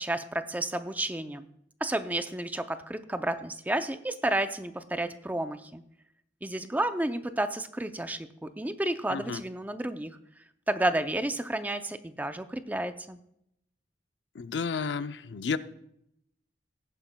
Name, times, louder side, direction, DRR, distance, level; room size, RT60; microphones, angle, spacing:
voice 1, 0.0-1.5 1.8-5.8 6.4-10.2 10.7-13.2, right 1 dB, 10° right, 9 dB, 0.5 m, -31 dB
voice 2, 14.4-15.6, left 5 dB, 70° left, 12 dB, 0.5 m, -31 dB
17.0 x 9.8 x 2.2 m, 0.76 s
head